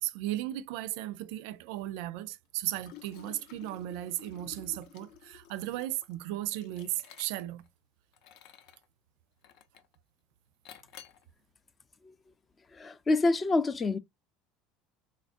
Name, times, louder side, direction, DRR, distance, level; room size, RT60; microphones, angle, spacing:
voice 1, 0.0-7.6, right 14 dB, 80° right, 0.4 m, -36 dB
Liquid, 2.6-7.7 8.1-8.8 9.4-10.0 10.6-11.2, left 10 dB, 70° left, 0.7 m, -53 dB
voice 2, 12.7-14.0, left 3 dB, 25° left, 0.4 m, -27 dB
4.1 x 2.5 x 2.4 m
supercardioid pair, 125°, 0 cm